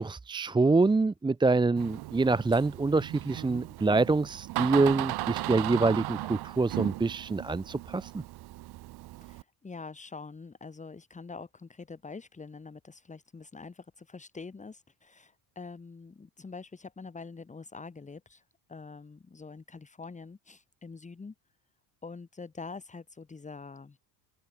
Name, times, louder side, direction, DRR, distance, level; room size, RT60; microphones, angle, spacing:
voice 1, 0.0-8.2, right 3 dB, 10° right, 0.9 m, -26 dB
Door, 1.8-9.4, right 17 dB, 60° right, 2.2 m, -37 dB
voice 2, 9.2-18.4 18.7-21.3 22.0-24.0, left 4 dB, 15° left, 4.5 m, -45 dB
open air
cardioid pair, 145°, 42 cm